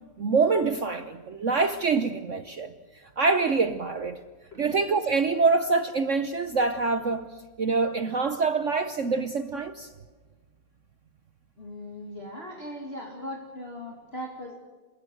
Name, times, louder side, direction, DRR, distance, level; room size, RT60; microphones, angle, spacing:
voice 1, 0.2-2.7 3.2-4.2 4.6-7.3 7.6-9.9, right 4 dB, 60° right, 10 dB, 0.8 m, -25 dB
voice 2, 11.6-14.5, left 1 dB, 30° left, 0 dB, 2.7 m, -39 dB
28.5 x 16.0 x 7.8 m, 1.4 s
omnidirectional pair, 2.3 m